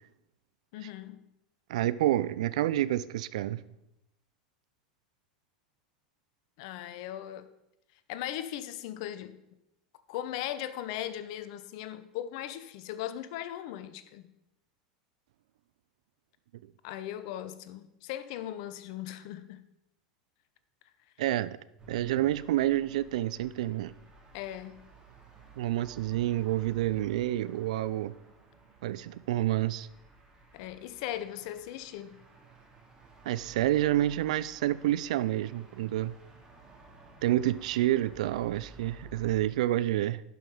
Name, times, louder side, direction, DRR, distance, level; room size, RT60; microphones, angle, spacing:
voice 1, 0.7-1.2 6.6-7.5 8.1-9.4 10.1-14.3 16.8-19.6 24.3-24.8 30.5-32.2, left 12 dB, 60° left, 13 dB, 0.8 m, -38 dB
voice 2, 1.7-3.6 21.2-21.6 21.9-23.9 25.6-28.1 28.8-29.9 33.2-36.1 37.2-40.2, right 14 dB, 70° right, 16 dB, 0.4 m, -28 dB
sound 1, 21.8-39.5, right 2 dB, 20° right, 2.8 m, -54 dB
11.5 x 5.7 x 5.0 m, 0.87 s
hypercardioid pair, 90°, 4 cm